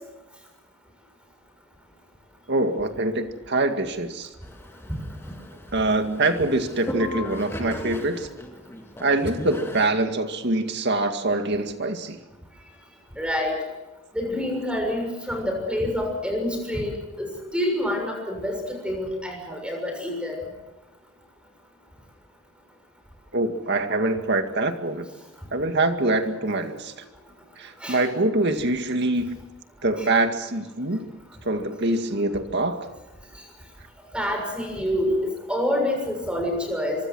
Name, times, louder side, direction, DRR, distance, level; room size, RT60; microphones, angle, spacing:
voice 1, 2.5-4.3 5.7-8.3 9.0-12.2 23.3-25.1 25.5-26.9 27.6-29.4 29.8-31.1 31.4-32.9, right 2 dB, 55° right, 7 dB, 2.1 m, -24 dB
sound 1, 4.4-9.9, left 1 dB, 10° left, 2.3 m, -37 dB
voice 2, 4.9-5.3 13.2-13.6 14.1-20.4 27.8-28.0 30.0-30.1 34.1-37.1, left 1 dB, 5° right, 3 dB, 6.8 m, -27 dB
24.5 x 24.0 x 6.3 m, 1.0 s
head